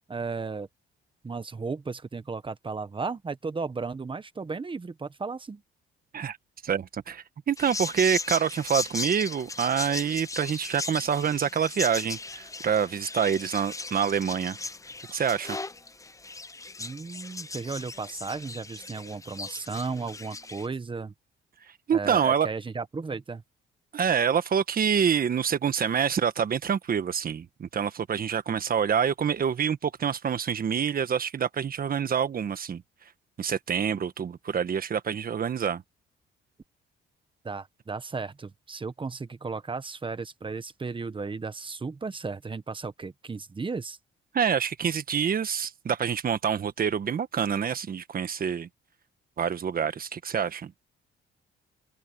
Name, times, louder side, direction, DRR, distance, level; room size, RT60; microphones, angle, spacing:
voice 1, 0.1-0.7 1.2-5.6 16.8-21.1 21.9-23.4 37.4-44.0, right 4 dB, 25° right, 1.3 m, -35 dB
voice 2, 6.6-14.6 15.1-15.6 21.9-22.5 23.9-32.8 33.4-35.8 44.3-48.7 49.4-50.7, right 7 dB, 50° right, 1.4 m, -26 dB
sound 1, 7.6-20.7, left 3 dB, 15° left, 0.8 m, -37 dB
open air
cardioid pair, 90°, 20 cm